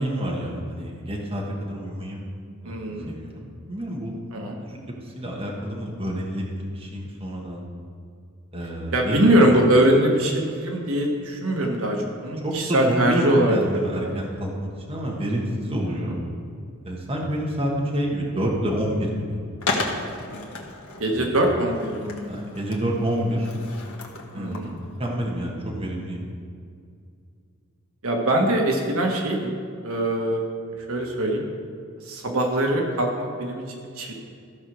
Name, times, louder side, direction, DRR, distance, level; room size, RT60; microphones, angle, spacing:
voice 1, 0.0-2.2 2.6-4.1 4.5-4.8 5.0-7.6 8.5-9.3 12.4-16.2 16.8-19.4 21.1-21.3 22.3-23.5 24.3-24.7 25.0-26.2, equal, 25° right, -2 dB, 1.4 m, -28 dB
voice 2, 2.6-3.1 4.3-4.6 8.9-14.1 15.9-16.1 21.0-22.3 24.3-24.8 28.0-29.5 29.8-30.5 30.8-31.4 32.0-34.1, right 1 dB, 75° right, 1 dB, 1.4 m, -22 dB
Skateboard, 19.6-25.1, left 3 dB, 70° left, 1.3 m, -34 dB
14.0 x 4.9 x 6.2 m, 2.3 s
head